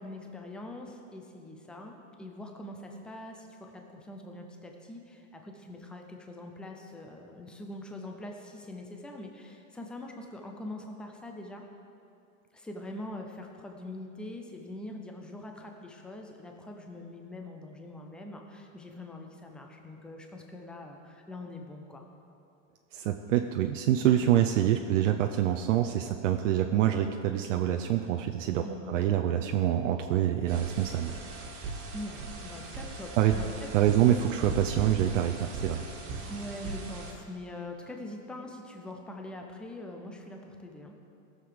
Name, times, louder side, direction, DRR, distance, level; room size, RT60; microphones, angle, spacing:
voice 1, 0.0-11.6 12.5-22.0 28.6-28.9 31.9-34.2 36.3-40.9, left 1 dB, ahead, 2 dB, 0.4 m, -43 dB
voice 2, 22.9-31.1 33.2-33.3 33.7-35.8, right 11 dB, 65° right, 5 dB, 0.7 m, -26 dB
sound 1, 30.5-37.1, right 3 dB, 35° right, 1.8 m, -39 dB
17.5 x 6.9 x 4.8 m, 2.6 s
supercardioid pair, 150°, 40 cm